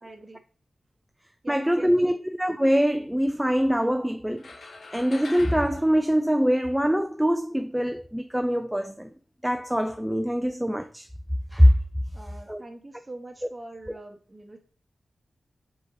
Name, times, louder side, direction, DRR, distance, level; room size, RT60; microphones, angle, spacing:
voice 1, 0.0-0.4 1.4-2.2 12.1-14.6, right 2 dB, 30° right, 0.9 m, -43 dB
voice 2, 1.5-4.5 4.9-9.1 9.4-11.1 11.5-11.7 12.5-12.6, equal, 5° right, 0.4 m, -23 dB
sound 1, 4.4-7.0, left 3 dB, 70° left, 0.6 m, -44 dB
4.4 x 3.9 x 2.6 m
cardioid pair, 55°, 0 cm